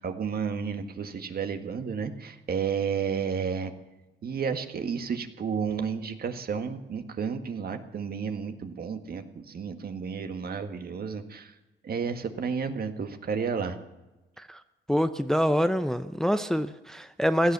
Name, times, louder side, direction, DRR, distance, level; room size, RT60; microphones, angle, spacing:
voice 1, 0.0-3.7 4.2-11.5 11.8-13.8, right 6 dB, 50° right, 1.8 m, -32 dB
voice 2, 14.9-17.5, equal, ahead, 0.6 m, -25 dB
16.5 x 12.5 x 7.0 m
cardioid pair, 90°, 20 cm